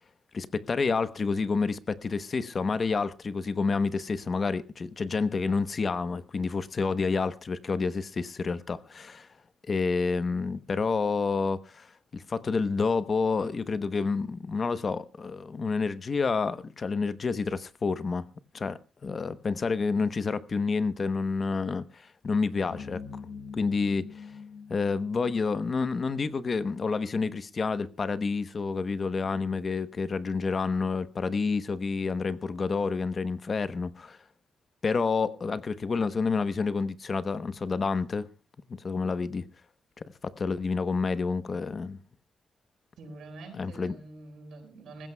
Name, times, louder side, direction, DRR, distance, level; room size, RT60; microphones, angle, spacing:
voice 1, 0.3-9.3 9.7-18.3 18.5-23.0 23.5-24.3 24.7-34.2 34.8-38.3 38.8-39.5 40.0-42.0 43.6-44.0, left 4 dB, 30° left, 0.8 m, -29 dB
sound 1, 22.6-27.2, left 5 dB, 65° left, 5.8 m, -45 dB
voice 2, 43.0-45.1, right 2 dB, 75° right, 7.3 m, -45 dB
25.0 x 15.5 x 2.2 m
wide cardioid pair, 175°, 0 cm